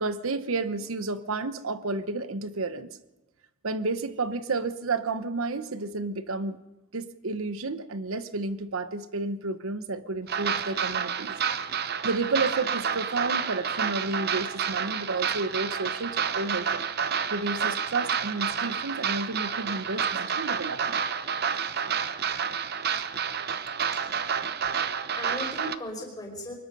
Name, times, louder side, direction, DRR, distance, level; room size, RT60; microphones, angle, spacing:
voice 1, 0.0-3.0 3.6-6.6 6.9-11.4 12.0-16.9 17.3-21.1 21.8-21.9, right 3 dB, 80° right, 12 dB, 0.9 m, -31 dB
sound 1, 10.3-25.8, right 7 dB, 50° right, 0.8 m, -29 dB
voice 2, 24.2-24.7 25.1-26.5, left 1 dB, 20° left, 1 dB, 5.1 m, -38 dB
23.5 x 20.5 x 5.5 m, 1.0 s
head